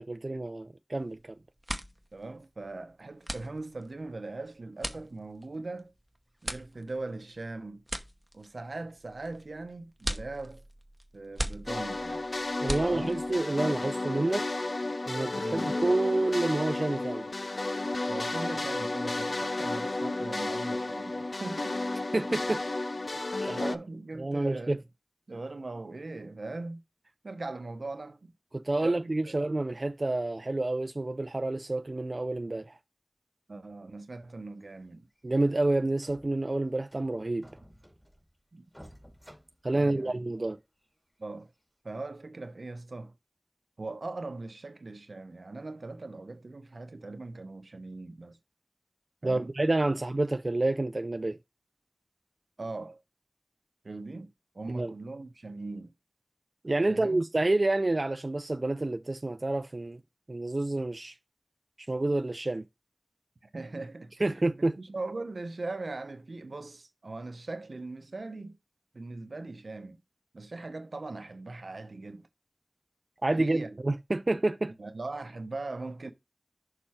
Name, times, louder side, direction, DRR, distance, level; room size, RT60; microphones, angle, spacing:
voice 1, 0.0-1.3 12.6-14.5 15.1-17.3 22.1-22.6 23.4-23.5 24.2-24.8 28.5-32.8 35.2-37.5 39.6-40.6 49.2-51.4 54.7-54.9 56.6-60.0 60.3-61.1 61.8-62.6 64.2-64.8 73.2-74.7, right 2 dB, 50° right, 0.4 m, -29 dB
sound 1, 0.9-1.2 1.5-13.4, right 1 dB, 15° right, 0.9 m, -39 dB
voice 2, 2.1-5.9 6.4-7.8 8.3-10.6 11.1-12.3 12.8-13.2 15.4-15.8 18.1-21.8 23.1-24.8 25.3-26.8 27.2-28.3 28.8-29.4 33.5-35.1 38.5-38.7 39.7-40.2 41.2-41.5 41.8-43.1 43.8-48.4 49.2-49.5 49.9-50.0 52.6-53.0 53.8-55.9 56.9-57.2 63.4-64.1 64.6-68.6 68.9-70.0 70.3-72.3 73.4-73.8 74.8-76.1, right 2 dB, 85° right, 0.8 m, -40 dB
sound 2, 11.7-23.8, left 2 dB, 70° left, 0.4 m, -32 dB
sound 3, 34.6-34.8 35.2-35.3 35.6-35.7 36.0-36.5 36.9-38.4 38.7-40.3 40.8-40.9 41.5-41.6, equal, 5° left, 2.4 m, -54 dB
6.7 x 4.4 x 4.3 m
wide cardioid pair, 55°, 0 cm